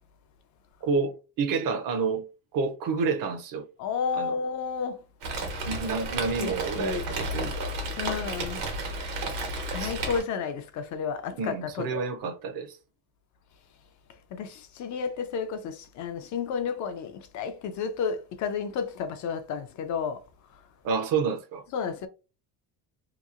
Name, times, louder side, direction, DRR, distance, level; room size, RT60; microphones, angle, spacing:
voice 1, 0.8-2.3 2.5-3.6 4.2-4.4 5.6-7.8 9.8-10.0 11.4-12.8 20.8-21.6, right 5 dB, 55° right, 0.6 m, -29 dB
voice 2, 3.8-5.0 6.4-7.1 8.0-8.6 9.7-12.0 14.3-20.2 21.7-22.1, left 6 dB, 45° left, 0.4 m, -32 dB
Rain, 5.2-10.2, right 2 dB, 90° right, 1.2 m, -32 dB
2.9 x 2.7 x 2.4 m
cardioid pair, 160°, 41 cm